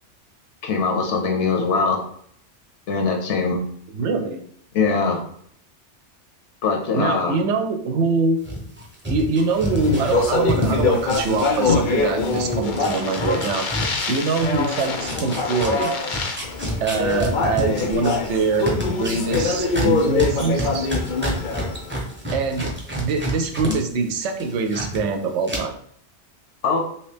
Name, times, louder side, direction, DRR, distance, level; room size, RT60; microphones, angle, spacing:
voice 1, 0.6-2.0 2.9-3.6 4.7-5.2 6.6-7.4 23.7-23.8 26.6-26.8, left 4 dB, 75° left, 2 dB, 1.0 m, -22 dB
voice 2, 3.9-4.4 6.9-8.4 9.1-13.7 14.1-15.9 16.8-20.9 22.3-25.7, right 4 dB, 80° right, 5 dB, 0.9 m, -24 dB
sound 1, 8.4-12.0 12.3-23.8 24.1-25.0 25.4-25.6, equal, 10° right, 0.7 m, -29 dB
Speech, 9.6-21.9, left 4 dB, 55° left, 0.6 m, -24 dB
3.0 x 2.9 x 3.3 m, 0.63 s
omnidirectional pair, 1.2 m